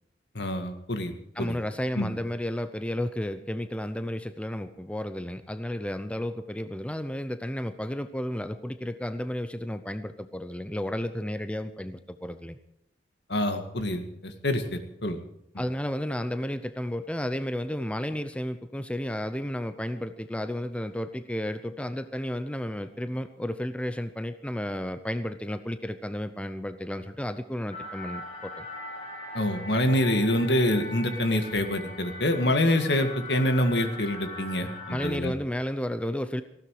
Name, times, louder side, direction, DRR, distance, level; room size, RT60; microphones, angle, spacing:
voice 1, 0.4-1.6 2.0-2.1 13.3-15.2 29.3-35.3, left 1 dB, 70° left, 7 dB, 2.0 m, -26 dB
voice 2, 1.4-12.6 15.6-28.7 34.9-36.4, equal, 5° left, 10 dB, 0.7 m, -32 dB
sound 1, 27.7-35.1, left 2 dB, 40° left, 6.2 m, -40 dB
19.0 x 15.5 x 4.9 m, 0.77 s
head